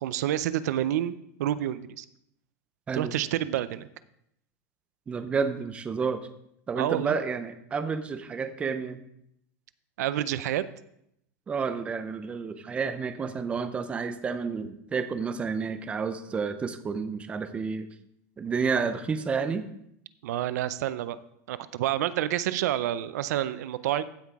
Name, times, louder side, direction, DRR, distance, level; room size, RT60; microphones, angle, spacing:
voice 1, 0.0-2.1 2.9-3.9 6.8-7.2 10.0-10.7 20.2-21.2 21.5-24.0, right 12 dB, 80° right, 15 dB, 0.5 m, -28 dB
voice 2, 5.1-6.2 6.7-9.0 11.5-17.9 18.4-19.7, right 5 dB, 15° right, 10 dB, 0.5 m, -30 dB
15.5 x 5.8 x 3.6 m, 0.75 s
supercardioid pair, 160°, 9 cm